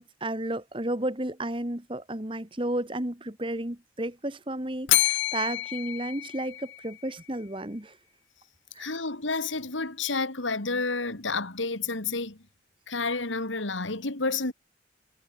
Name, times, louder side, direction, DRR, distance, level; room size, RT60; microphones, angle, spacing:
voice 1, 0.0-8.0 8.8-8.9, right 1 dB, 25° right, 1.9 m, -32 dB
Bell, 4.9-7.1, left 17 dB, 70° left, 0.3 m, -28 dB
voice 2, 8.8-12.4 12.9-14.5, left 3 dB, 85° left, 2.7 m, -30 dB
head